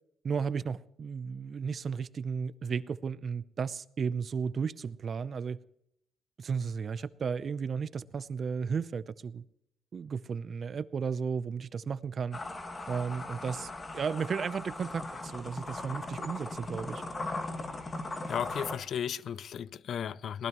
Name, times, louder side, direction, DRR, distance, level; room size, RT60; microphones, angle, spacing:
voice 1, 0.2-5.6 6.4-9.4 9.9-12.4 12.9-17.0, right 6 dB, 50° right, 0.7 m, -34 dB
sound 1, 12.3-18.8, left 2 dB, 30° left, 2.2 m, -39 dB
voice 2, 18.3-20.5, left 8 dB, 60° left, 0.5 m, -34 dB
21.5 x 18.5 x 3.1 m
cardioid pair, 90°, 0 cm